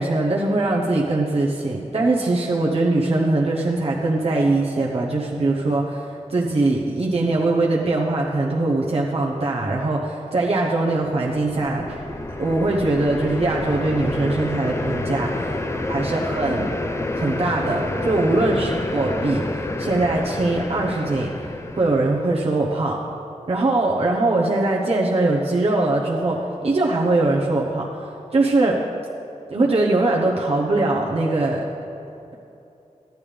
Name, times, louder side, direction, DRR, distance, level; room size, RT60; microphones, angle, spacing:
voice 1, 0.0-12.0 12.4-15.6 15.9-16.7 17.1-21.5 21.8-23.0 23.5-28.8 29.5-31.6, right 2 dB, 55° right, -4 dB, 0.9 m, -21 dB
sound 1, 11.1-22.4, left 2 dB, 20° left, 0.6 m, -29 dB
12.5 x 10.5 x 3.4 m, 2.8 s
wide cardioid pair, 105°, 12 cm